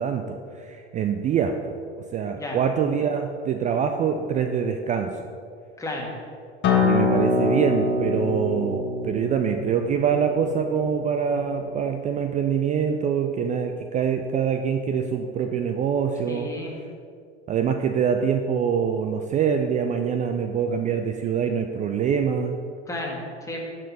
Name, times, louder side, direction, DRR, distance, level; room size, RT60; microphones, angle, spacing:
voice 1, 0.0-1.5 2.1-5.1 6.8-16.5 17.5-22.6, right 7 dB, 20° right, 6 dB, 0.3 m, -25 dB
voice 2, 5.8-6.1 16.3-16.8 22.9-23.6, left 1 dB, 10° left, -2 dB, 1.7 m, -33 dB
Acoustic guitar, 6.6-11.8, left 3 dB, 30° left, 1.3 m, -25 dB
12.0 x 4.3 x 4.1 m, 2.2 s
hypercardioid pair, 85°, 35 cm